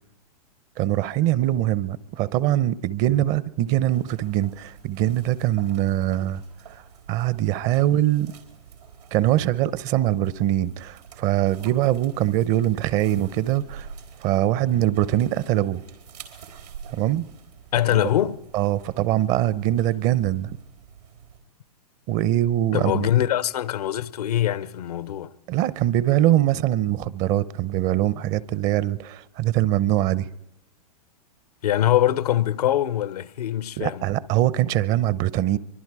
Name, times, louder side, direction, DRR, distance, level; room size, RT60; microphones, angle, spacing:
voice 1, 0.8-6.4 7.1-8.3 9.1-13.9 14.2-15.8 16.9-17.3 17.9-18.1 18.5-20.6 22.1-23.1 25.5-30.3 33.8-35.6, right 13 dB, 40° right, 0.8 m, -22 dB
sound 1, 3.9-21.4, right 7 dB, 90° right, 4.2 m, -47 dB
voice 2, 17.7-18.4 22.7-25.3 31.6-34.1, left 12 dB, 75° left, 0.9 m, -23 dB
24.0 x 23.5 x 4.8 m
hypercardioid pair, 115°, 20 cm